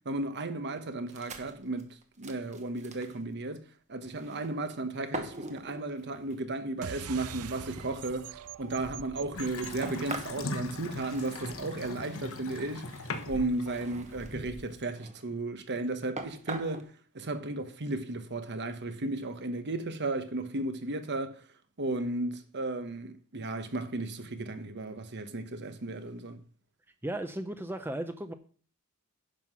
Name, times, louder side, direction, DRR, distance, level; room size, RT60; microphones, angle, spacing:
voice 1, 0.0-1.9 2.2-12.9 13.3-16.9 17.1-21.4 21.8-26.4, right 2 dB, 50° right, 1.1 m, -34 dB
sound 1, 1.1-3.2 4.0-4.7 5.1-6.4 7.1-7.2 7.8-12.1 12.7-14.3 14.8-15.4 15.8-15.9 16.2-16.8, right 3 dB, 30° right, 1.2 m, -44 dB
sound 2, 6.8-11.7, right 7 dB, 80° right, 0.6 m, -45 dB
Water tap faucet / Sink (filling or washing) / Bathtub (filling or washing), 9.4-14.8, left 2 dB, 65° left, 1.2 m, -40 dB
voice 2, 27.0-28.3, right 1 dB, 10° right, 0.6 m, -35 dB
10.5 x 5.7 x 6.1 m
head